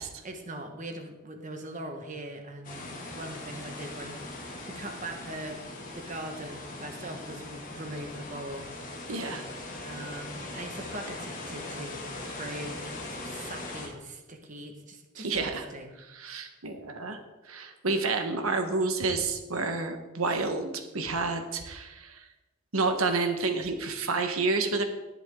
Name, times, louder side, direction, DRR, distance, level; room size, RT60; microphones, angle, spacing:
voice 1, 0.2-2.8 3.1-5.6 5.9-8.9 9.8-12.0 12.3-15.9 16.2-16.5, right 1 dB, 35° right, 4 dB, 1.4 m, -41 dB
sound 1, 2.6-13.9, left 2 dB, 40° left, 2.3 m, -40 dB
voice 2, 9.1-9.5 15.2-15.7 16.1-17.2 17.5-22.2 22.7-24.8, right 3 dB, 80° right, 6 dB, 1.4 m, -29 dB
19.0 x 7.4 x 3.8 m, 1.1 s
head